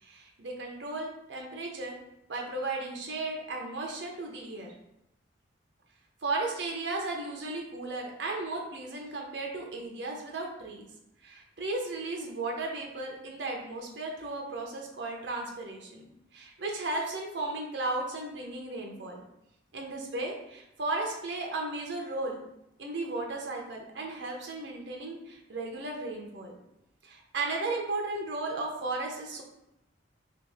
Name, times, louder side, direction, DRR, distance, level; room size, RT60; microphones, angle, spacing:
voice 1, 0.0-2.0 2.3-4.7 6.2-10.9 11.2-16.0 16.3-19.2 19.7-22.4 22.8-26.5 27.0-29.4, right 2 dB, 65° right, 1 dB, 0.7 m, -35 dB
2.9 x 2.8 x 3.5 m, 0.84 s
head